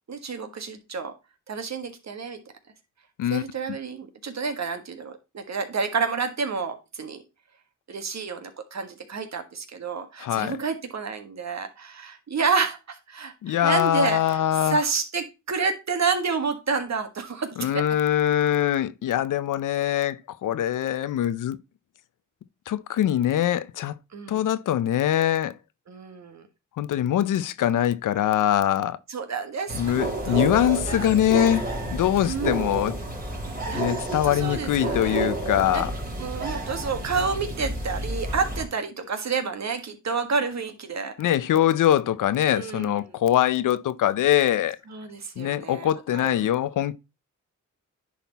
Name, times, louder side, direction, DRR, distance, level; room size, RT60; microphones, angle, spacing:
voice 1, 0.1-1.1 1.5-2.4 3.3-7.2 7.9-17.8 24.1-24.4 25.9-26.5 29.1-31.1 31.4-31.5 32.2-32.8 33.4-35.3 35.7-35.8 36.2-41.1 42.5-43.0 44.9-46.3, right 5 dB, 60° right, 1.6 m, -30 dB
voice 2, 10.2-10.6 13.4-14.8 17.6-21.6 22.7-23.9 24.3-25.6 26.8-29.0 29.7-33.0 33.8-35.9 41.2-44.8 45.4-46.9, left 11 dB, 90° left, 0.6 m, -23 dB
sound 1, 29.7-38.6, right 1 dB, 30° right, 2.9 m, -30 dB
10.5 x 4.2 x 4.1 m
cardioid pair, 70°, 30 cm